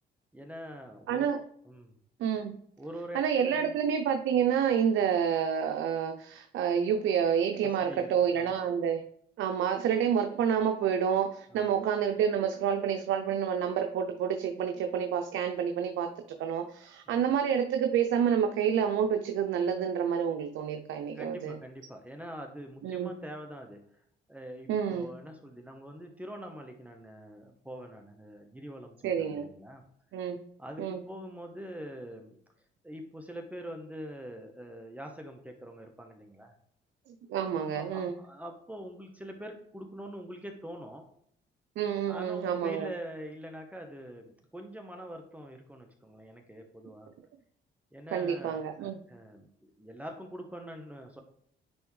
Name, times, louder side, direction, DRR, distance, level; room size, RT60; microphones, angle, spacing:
voice 1, 0.3-1.3 1.6-2.0 2.8-3.8 7.6-8.6 11.5-11.8 17.1-17.3 21.1-23.8 24.3-29.9 30.6-32.4 32.8-36.5 37.5-41.1 42.1-47.1 47.9-51.2, equal, 5° right, 3 dB, 1.0 m, -44 dB
voice 2, 1.1-1.4 2.2-2.6 3.1-9.0 9.4-21.6 22.8-23.1 24.7-25.1 29.0-29.5 30.1-30.4 30.8-31.0 37.1-38.1 41.8-42.9 48.1-49.0, right 8 dB, 80° right, 5 dB, 0.6 m, -28 dB
9.5 x 3.5 x 3.1 m, 0.68 s
cardioid pair, 90°, 20 cm